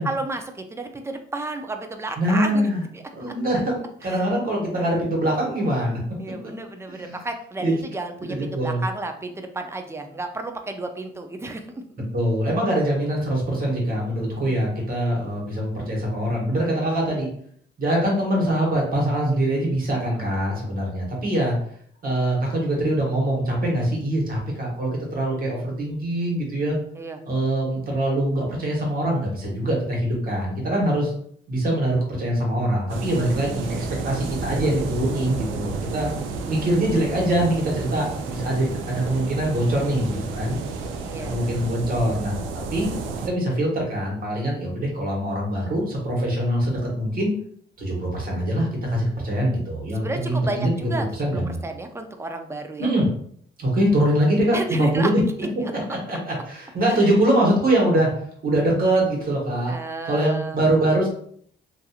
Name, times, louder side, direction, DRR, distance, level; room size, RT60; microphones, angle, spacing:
voice 1, 0.0-3.3 4.0-4.3 4.7-5.0 6.2-11.8 14.3-14.6 27.0-27.2 35.9-36.2 41.0-41.3 49.9-52.9 54.5-55.1 55.4-55.5 56.9-57.1 59.7-60.6, right 2 dB, 15° right, 6 dB, 0.4 m, -32 dB
voice 2, 2.2-2.8 3.1-6.0 6.9-7.2 7.6-7.8 8.3-8.8 12.1-17.3 17.8-21.5 22.0-26.8 27.2-31.1 31.5-36.1 36.5-40.6 41.2-42.4 42.7-42.9 43.3-47.3 47.8-50.7 51.2-51.6 52.8-53.1 53.6-55.2 55.9-58.1 58.4-59.7 60.0-61.1, right 1 dB, 45° right, -2 dB, 1.2 m, -23 dB
sound 1, 32.9-43.3, right 4 dB, 80° right, 0.4 m, -31 dB
2.8 x 2.5 x 2.3 m, 0.62 s
cardioid pair, 90°, 20 cm